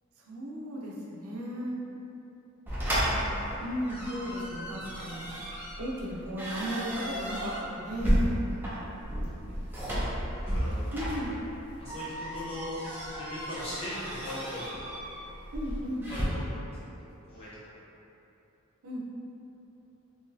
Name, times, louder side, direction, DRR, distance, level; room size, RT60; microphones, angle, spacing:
voice 1, 0.3-1.8 2.9-5.3 5.8-8.4 10.9-11.3 15.5-16.1 18.8-19.0, equal, 85° right, -3 dB, 0.6 m, -35 dB
sound 1, 2.7-16.2, equal, 10° right, 0.6 m, -33 dB
voice 2, 10.3-10.8 11.8-12.7 13.1-14.8 16.1-16.7 17.3-17.7, left 1 dB, 25° left, -10 dB, 0.6 m, -39 dB
3.8 x 2.8 x 2.7 m, 2.9 s
head